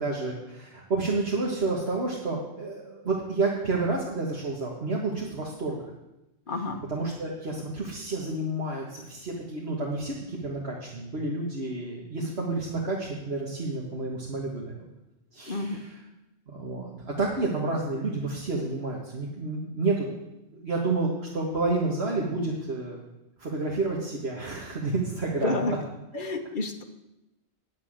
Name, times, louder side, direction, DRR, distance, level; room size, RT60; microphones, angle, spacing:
voice 1, 0.0-5.8 6.9-14.8 15.3-15.9 16.5-20.1 20.5-23.0 23.4-25.6 26.1-26.3, right 3 dB, 65° right, -2 dB, 1.9 m, -30 dB
voice 2, 6.5-6.8 15.5-15.8 25.4-25.8 26.1-26.8, left 2 dB, 45° left, 5 dB, 1.3 m, -29 dB
10.0 x 7.4 x 8.7 m, 0.94 s
omnidirectional pair, 1.2 m